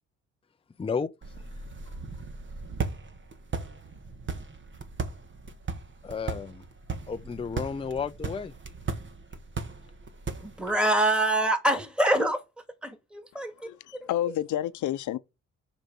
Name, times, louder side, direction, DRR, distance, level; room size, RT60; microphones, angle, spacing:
voice 1, 0.8-1.1 6.0-6.6 7.1-8.5, left 5 dB, 20° left, 0.6 m, -32 dB
sound 1, 1.2-10.8, right 4 dB, 40° right, 1.6 m, -37 dB
voice 2, 10.4-12.4 12.8-13.7 14.0-14.3, right 1 dB, 5° right, 2.3 m, -26 dB
voice 3, 13.6-15.2, left 12 dB, 75° left, 0.9 m, -30 dB
6.7 x 5.4 x 6.1 m
cardioid pair, 90°, 30 cm